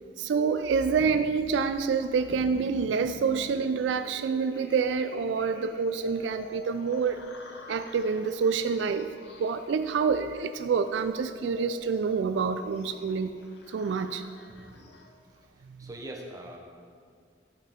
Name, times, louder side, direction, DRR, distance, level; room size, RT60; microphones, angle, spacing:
voice 1, 0.2-7.2 7.7-9.1 9.4-13.3 13.7-14.2 15.8-15.9, right 5 dB, 80° right, 10 dB, 0.3 m, -27 dB
sound 1, 0.8-15.5, left 2 dB, 65° left, 0.7 m, -49 dB
voice 2, 14.6-14.9 15.5-16.6, right 1 dB, 20° right, 0 dB, 0.9 m, -44 dB
11.5 x 5.5 x 3.6 m, 2.2 s
head